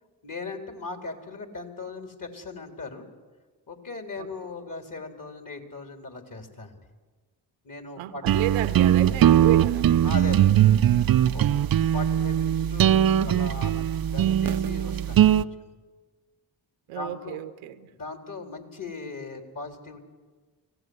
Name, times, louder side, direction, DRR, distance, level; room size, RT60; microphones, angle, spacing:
voice 1, 0.2-3.1 3.7-6.7 7.6-8.2 10.0-10.5 11.3-11.5 11.8-13.9 14.1-15.7 16.9-17.4 17.9-20.1, left 3 dB, 40° left, 4.0 m, -38 dB
voice 2, 8.0-9.9 11.2-11.7 16.9-17.9, right 13 dB, 85° right, 1.1 m, -33 dB
sound 1, 8.3-15.4, right 10 dB, 45° right, 0.7 m, -20 dB
24.5 x 17.0 x 8.1 m
hypercardioid pair, 40°, 49 cm